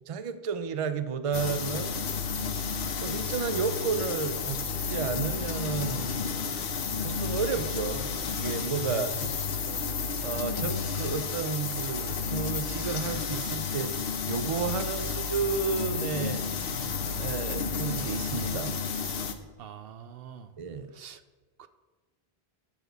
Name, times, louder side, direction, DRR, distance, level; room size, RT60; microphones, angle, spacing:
voice 1, 0.1-2.0 2.7-6.0 7.0-9.1 10.2-16.4 17.2-18.8 20.6-20.9, right 5 dB, 40° right, 11 dB, 0.6 m, -32 dB
sound 1, 1.3-19.3, left 5 dB, 70° left, 1.0 m, -32 dB
voice 2, 8.8-9.3 19.6-20.5 20.9-21.2 21.6-21.7, right 9 dB, 75° right, 12 dB, 0.8 m, -42 dB
12.0 x 4.7 x 6.7 m, 1.3 s
omnidirectional pair, 1.0 m